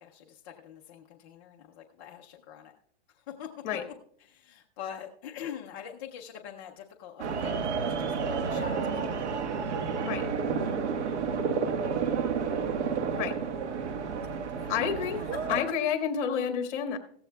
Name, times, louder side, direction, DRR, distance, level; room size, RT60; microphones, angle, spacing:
voice 1, 0.0-2.7 3.1-9.3 14.5-14.7 15.0-15.7, left 9 dB, 20° left, 0 dB, 0.4 m, -44 dB
sound 1, 7.2-15.6, right 5 dB, 75° right, 1.4 m, -30 dB
voice 2, 14.7-15.2 15.5-17.0, left 8 dB, 40° left, 6 dB, 1.7 m, -29 dB
16.5 x 14.5 x 2.2 m, 0.64 s
hypercardioid pair, 155°, 35 cm